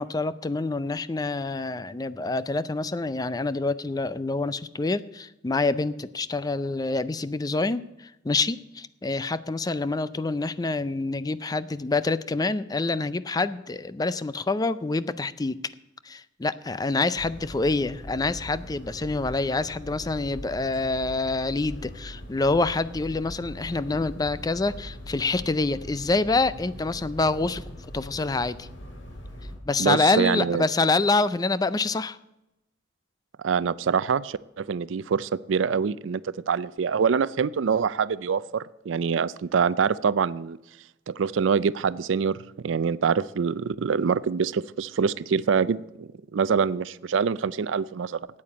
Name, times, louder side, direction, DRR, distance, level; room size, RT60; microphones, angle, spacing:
voice 1, 0.0-15.6 16.0-28.7 29.6-32.2, left 3 dB, 20° left, 15 dB, 0.4 m, -26 dB
sound 1, 17.2-29.6, equal, 90° left, 2.9 m, -41 dB
voice 2, 29.8-30.6 33.4-40.6 41.1-42.4 42.6-48.3, right 6 dB, 90° right, 19 dB, 0.4 m, -25 dB
9.1 x 8.6 x 8.6 m, 0.90 s
head